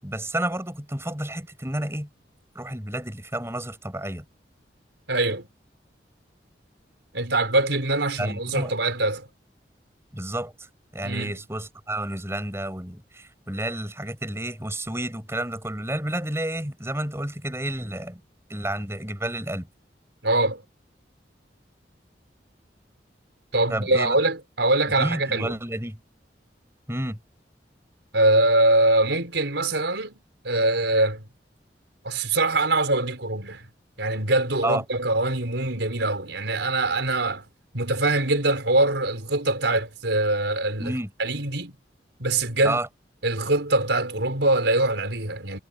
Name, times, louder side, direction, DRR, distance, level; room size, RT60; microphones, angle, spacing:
voice 1, 0.0-2.1 2.5-4.2 8.2-8.7 10.1-10.5 10.9-18.2 18.5-19.7 23.7-24.2 25.0-26.0 26.9-27.2 34.6-34.8 40.8-41.1 42.6-42.9, right 1 dB, 15° right, 7.7 m, -30 dB
voice 2, 5.1-5.5 7.1-9.3 11.0-11.4 20.2-20.6 23.5-25.5 28.1-31.3 32.0-33.7 34.0-37.4 37.7-40.9 41.2-41.7 42.2-42.8 43.2-45.6, right 2 dB, 85° right, 4.9 m, -23 dB
head